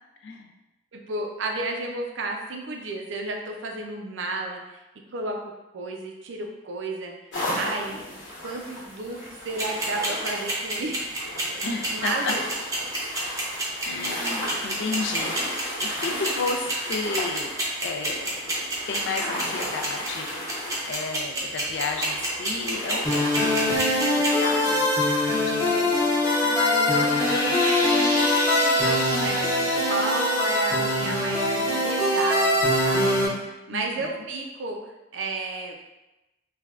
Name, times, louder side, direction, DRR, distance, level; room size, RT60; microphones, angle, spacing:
voice 1, 0.9-4.8 5.1-5.4 5.7-7.1 7.5-11.0 11.7-12.4 26.4-34.8 35.1-35.7, right 2 dB, 85° right, 1 dB, 0.5 m, -32 dB
sound 1, 7.3-23.8, left 1 dB, 90° left, 1.1 m, -35 dB
sound 2, 9.6-24.3, right 2 dB, 20° right, 0.6 m, -28 dB
voice 2, 11.6-12.3 13.8-17.5 17.8-18.4 18.9-20.3 20.8-23.8 24.2-24.9 25.3-26.0 33.7-34.3, left 4 dB, 70° left, 3 dB, 0.4 m, -32 dB
sound 3, 23.0-33.3, left 1 dB, 15° left, 0.8 m, -22 dB
3.2 x 2.2 x 2.4 m, 1.0 s
head